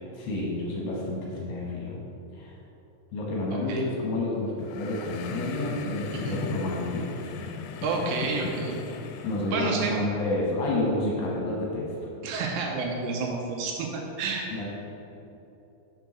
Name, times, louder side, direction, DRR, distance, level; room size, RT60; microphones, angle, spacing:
voice 1, 0.1-2.0 2.3-2.6 3.1-7.3 9.2-11.9 14.5-14.6, left 2 dB, 70° left, -4 dB, 2.7 m, -29 dB
voice 2, 3.5-3.8 6.1-6.4 7.8-8.8 9.5-10.0 12.2-14.5, right 4 dB, 80° right, 0 dB, 2.7 m, -30 dB
sound 1, 4.6-9.6, left 6 dB, 90° left, 2.9 m, -38 dB
6.7 x 4.5 x 6.1 m, 2.9 s
omnidirectional pair, 5.3 m